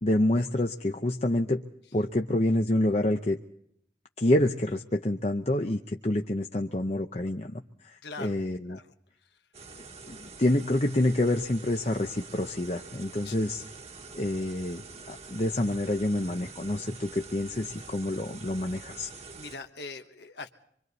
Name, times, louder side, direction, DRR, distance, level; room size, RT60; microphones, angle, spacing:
voice 1, 0.0-1.6 1.9-3.4 4.2-8.8 10.1-13.6 14.1-14.8 15.1-19.1, left 1 dB, 35° left, 4 dB, 0.8 m, -27 dB
voice 2, 8.0-8.9 9.2-9.4 13.2-13.3 19.3-20.5, left 3 dB, 70° left, 5 dB, 1.2 m, -42 dB
sound 1, 9.5-19.6, right 4 dB, 35° right, 1.5 m, -46 dB
26.0 x 24.5 x 4.1 m, 0.71 s
head